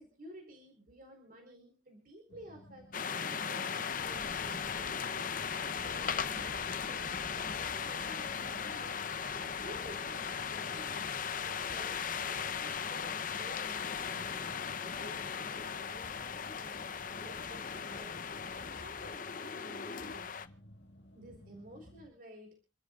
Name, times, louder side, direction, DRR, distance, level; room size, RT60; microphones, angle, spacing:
voice 1, 0.0-5.4 5.8-9.0 9.4-16.8 17.2-18.2 18.6-20.4 21.1-22.5, equal, 45° right, 3 dB, 4.1 m, -53 dB
sound 1, 2.3-22.1, equal, 70° left, 2.0 m, -56 dB
sound 2, 2.9-20.5, left 6 dB, 45° left, 0.7 m, -37 dB
28.5 x 13.0 x 2.4 m, 0.33 s
head